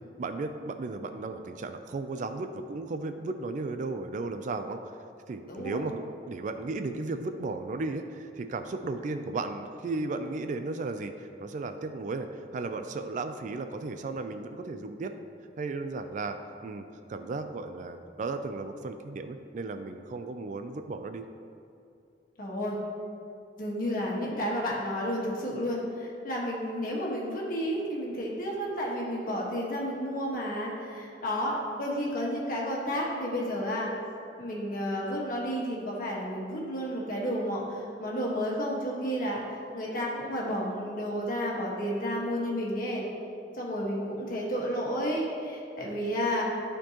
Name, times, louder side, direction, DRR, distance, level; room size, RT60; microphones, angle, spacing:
voice 1, 0.2-4.8 5.3-12.3 12.5-15.1 15.6-16.4 16.6-21.3, right 3 dB, 45° right, 8 dB, 0.3 m, -35 dB
voice 2, 5.5-5.8 22.4-22.8 23.6-33.9 34.4-39.4 39.7-43.0 43.6-46.4, equal, 50° left, -3 dB, 1.4 m, -31 dB
12.0 x 4.4 x 2.9 m, 2.5 s
head